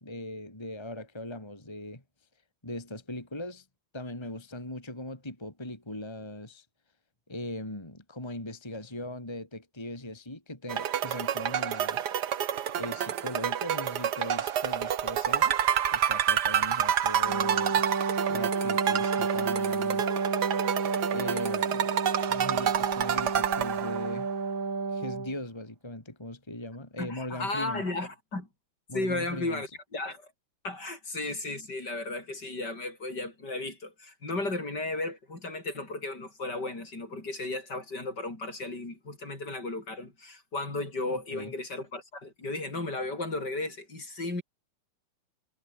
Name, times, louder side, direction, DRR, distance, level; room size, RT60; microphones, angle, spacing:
voice 1, 0.0-2.0 2.6-3.7 3.9-6.7 7.3-12.1 12.7-15.6 15.9-17.8 18.3-20.0 21.1-21.9 22.3-24.3 24.9-27.8 28.9-29.6 41.1-41.5, left 1 dB, 10° left, 2.9 m, -39 dB
sound 1, 10.7-24.3, right 9 dB, 55° right, 1.6 m, -28 dB
Wind instrument woodwind instrument, 17.2-25.4, right 4 dB, 40° right, 3.0 m, -31 dB
voice 2, 27.0-28.5 28.9-30.3 30.6-44.4, left 2 dB, 50° left, 6.5 m, -34 dB
omnidirectional pair, 2.4 m